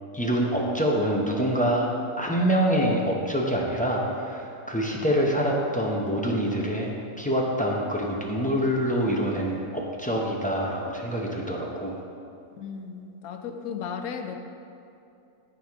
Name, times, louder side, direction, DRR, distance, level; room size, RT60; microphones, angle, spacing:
voice 1, 0.1-1.9 2.2-12.0, equal, 10° left, -2 dB, 0.5 m, -25 dB
voice 2, 12.6-14.3, left 6 dB, 80° left, 5 dB, 1.1 m, -35 dB
13.5 x 4.8 x 3.6 m, 2.6 s
omnidirectional pair, 1.5 m